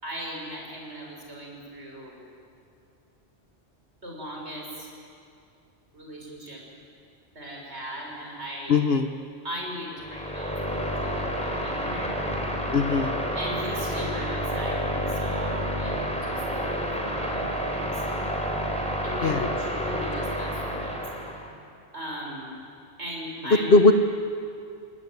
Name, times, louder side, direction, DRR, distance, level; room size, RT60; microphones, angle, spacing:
voice 1, 0.0-2.2 4.0-4.9 5.9-6.6 7.3-8.8 9.4-12.2 13.3-16.0 16.2-18.0 19.0-21.0 21.9-22.5 23.0-23.9, equal, 90° right, -2 dB, 6.9 m, -38 dB
voice 2, 8.7-9.1 12.7-13.2 19.2-19.4 23.7-23.9, left 3 dB, 65° left, 7 dB, 1.3 m, -19 dB
sound 1, 10.0-21.5, equal, 5° left, 3.9 m, -29 dB
29.0 x 20.0 x 9.6 m, 2.5 s
omnidirectional pair, 1.1 m